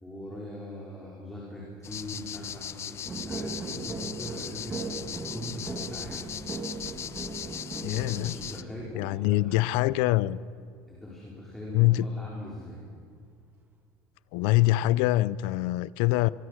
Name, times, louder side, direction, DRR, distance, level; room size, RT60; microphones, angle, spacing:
voice 1, 0.0-6.3 7.9-9.9 10.9-12.8, left 1 dB, 5° left, 4.5 m, -41 dB
sound 1, 1.8-8.6, left 9 dB, 30° left, 0.7 m, -39 dB
sound 2, 3.0-9.5 14.5-15.0, right 3 dB, 20° right, 2.0 m, -38 dB
voice 2, 7.8-8.4 8.9-10.4 11.7-12.1 14.3-16.3, left 17 dB, 75° left, 0.6 m, -24 dB
25.0 x 22.5 x 6.5 m
cardioid pair, 145°, 8 cm